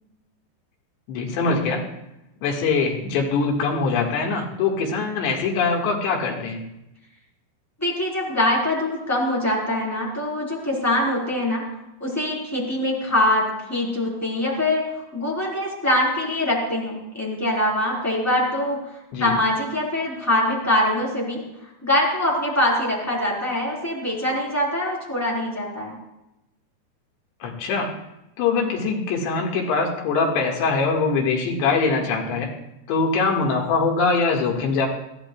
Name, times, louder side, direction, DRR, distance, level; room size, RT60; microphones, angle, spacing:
voice 1, 1.1-1.8 2.4-6.6 19.1-19.3 27.4-27.9 28.4-32.5 32.9-34.9, left 4 dB, 90° left, 0 dB, 4.0 m, -23 dB
voice 2, 7.8-11.6 12.0-14.8 15.1-18.8 19.2-21.4 21.8-26.0, left 1 dB, 5° left, -4 dB, 3.2 m, -23 dB
21.5 x 14.5 x 2.3 m, 0.89 s
omnidirectional pair, 4.9 m